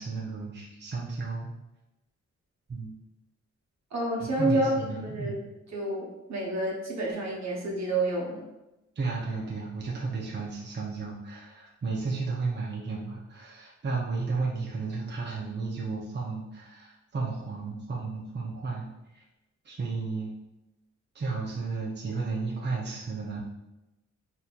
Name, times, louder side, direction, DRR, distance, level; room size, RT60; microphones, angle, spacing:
voice 1, 0.0-1.5 2.7-2.9 4.2-5.4 9.0-18.9 19.1-19.2 19.6-20.3 21.1-23.4, right 4 dB, 35° right, -4 dB, 0.8 m, -33 dB
voice 2, 3.9-5.3 5.7-8.5, right 1 dB, 65° right, -3 dB, 1.1 m, -29 dB
4.1 x 2.8 x 2.5 m, 0.96 s
cardioid pair, 70°, 29 cm